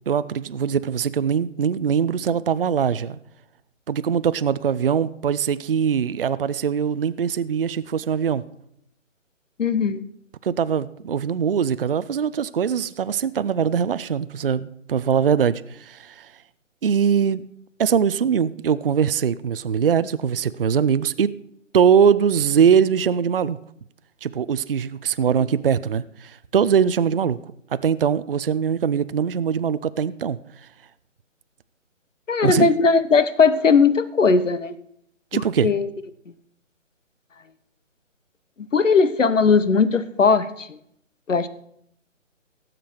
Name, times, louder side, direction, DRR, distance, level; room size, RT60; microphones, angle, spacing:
voice 1, 0.1-3.2 3.9-8.4 10.4-16.3 16.8-17.4 17.8-21.3 21.7-23.6 24.2-27.4 27.7-30.4 32.4-32.7 35.3-35.7, right 7 dB, 45° right, 15 dB, 0.5 m, -22 dB
voice 2, 9.6-10.0 32.3-34.7 35.3-35.9 38.7-40.8 41.3-41.5, left 5 dB, 75° left, 14 dB, 1.1 m, -18 dB
17.5 x 7.6 x 4.5 m, 0.72 s
figure-of-eight pair, 150°, 38 cm